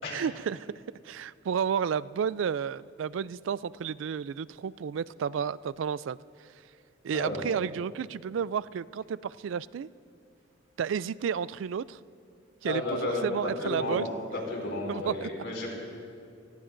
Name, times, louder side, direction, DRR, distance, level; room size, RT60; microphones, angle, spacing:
voice 1, 0.1-0.7 1.0-6.5 7.0-9.9 10.8-12.0 12.6-14.1 14.9-15.3, right 7 dB, 85° right, 18 dB, 0.3 m, -32 dB
voice 2, 12.6-14.0 14.3-15.7, left 2 dB, 70° left, -1 dB, 4.8 m, -32 dB
29.0 x 19.0 x 2.6 m, 2.4 s
head